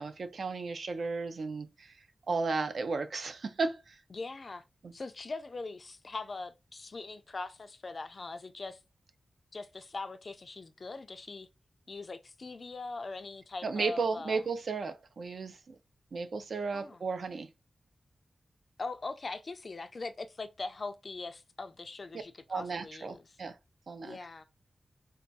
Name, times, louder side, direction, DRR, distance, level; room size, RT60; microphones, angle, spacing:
voice 1, 0.0-2.0 2.3-4.0 4.8-4.9 13.6-15.8 16.1-17.5 22.5-23.6 23.9-24.2, right 4 dB, 60° right, 0.4 m, -34 dB
voice 2, 4.1-4.6 4.9-8.8 9.5-11.5 11.9-14.4 16.7-17.0 18.8-23.4 24.0-24.5, left 3 dB, 40° left, 0.3 m, -41 dB
4.4 x 2.3 x 2.6 m
wide cardioid pair, 155°, 0 cm